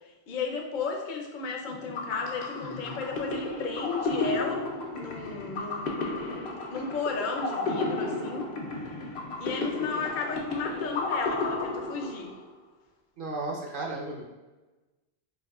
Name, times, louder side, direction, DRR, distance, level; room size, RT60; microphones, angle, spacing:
voice 1, 0.3-6.4 6.7-8.5 9.4-12.3, left 4 dB, 55° left, 1 dB, 0.7 m, -34 dB
sound 1, 1.7-12.5, left 3 dB, 75° left, 0.9 m, -33 dB
voice 2, 13.2-14.2, right 2 dB, 55° right, -2 dB, 1.0 m, -34 dB
4.7 x 2.8 x 2.3 m, 1.2 s
omnidirectional pair, 1.1 m